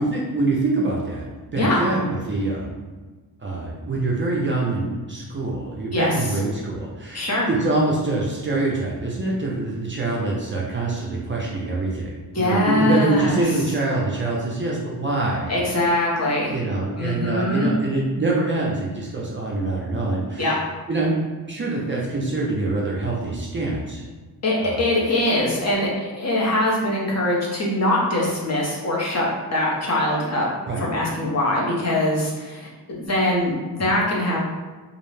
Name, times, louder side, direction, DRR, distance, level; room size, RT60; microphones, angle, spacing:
voice 1, 0.0-2.8 3.4-15.5 16.5-20.5 20.9-21.2 21.5-24.0 24.6-24.9 30.7-30.9, right 2 dB, 30° right, -3 dB, 0.4 m, -25 dB
voice 2, 7.1-7.5 12.3-13.4 15.5-16.5 17.0-17.7 20.4-20.5 24.4-30.5 30.8-34.4, left 1 dB, 40° left, -3 dB, 0.7 m, -22 dB
2.4 x 2.0 x 3.1 m, 1.3 s
wide cardioid pair, 115°, 39 cm